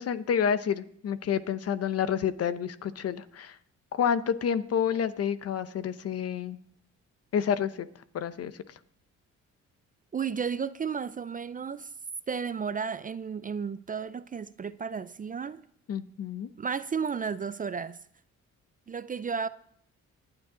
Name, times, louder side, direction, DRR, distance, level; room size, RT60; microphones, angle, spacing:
voice 1, 0.0-3.6 3.9-6.6 7.3-7.9 8.1-8.5 15.9-16.5, left 8 dB, 55° left, 0.8 m, -29 dB
voice 2, 10.1-11.9 12.3-15.6 16.6-18.0 18.9-19.5, right 6 dB, 30° right, 0.4 m, -33 dB
26.0 x 9.0 x 3.8 m
cardioid pair, 90°, 30 cm